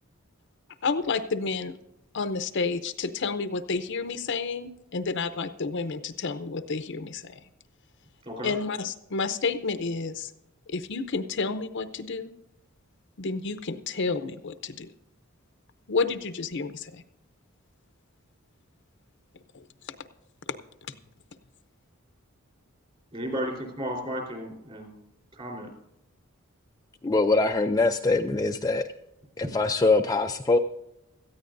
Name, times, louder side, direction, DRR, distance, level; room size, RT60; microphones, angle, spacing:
voice 1, 0.8-1.8 2.1-7.4 8.4-10.3 10.7-12.3 13.2-14.9 15.9-17.0 19.5-19.6, left 4 dB, 60° left, 10 dB, 0.7 m, -30 dB
voice 2, 23.1-24.9 25.4-25.7, equal, 30° right, 3 dB, 3.8 m, -33 dB
voice 3, 27.0-28.8 29.4-30.6, left 3 dB, 15° left, 4 dB, 0.4 m, -23 dB
18.0 x 14.0 x 2.6 m, 0.89 s
head